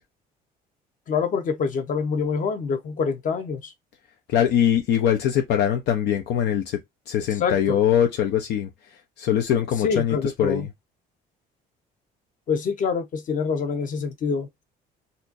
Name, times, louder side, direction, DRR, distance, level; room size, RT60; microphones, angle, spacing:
voice 1, 1.1-3.7 7.4-7.8 9.8-10.7 12.5-14.5, left 5 dB, 50° left, 1.0 m, -26 dB
voice 2, 4.3-6.8 7.1-8.7 9.2-10.7, left 9 dB, 80° left, 0.8 m, -22 dB
4.3 x 2.6 x 2.6 m
cardioid pair, 110°, 17 cm